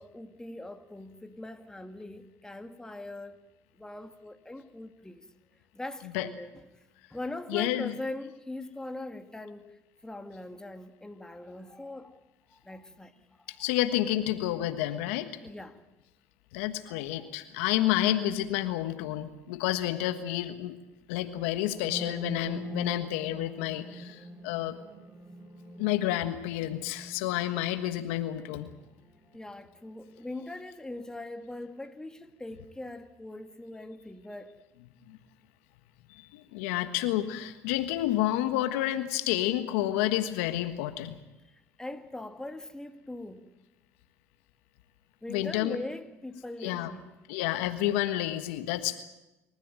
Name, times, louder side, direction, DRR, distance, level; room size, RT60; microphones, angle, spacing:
voice 1, 0.0-3.4 3.7-5.3 5.7-6.5 6.8-12.2 12.5-13.6 14.6-14.7 15.4-15.8 16.9-17.3 22.7-22.8 29.3-34.6 41.5-43.5 45.2-47.1, left 2 dB, 10° left, 2.3 m, -41 dB
voice 2, 7.5-7.9 13.5-15.3 16.5-20.8 21.1-24.8 25.8-28.7 35.1-35.2 36.1-41.2 45.3-45.8 46.6-46.9 47.3-49.0, left 14 dB, 80° left, 1.4 m, -30 dB
sound 1, 21.6-29.5, right 1 dB, 35° right, 3.3 m, -44 dB
28.0 x 14.5 x 9.1 m
hypercardioid pair, 70°, 7 cm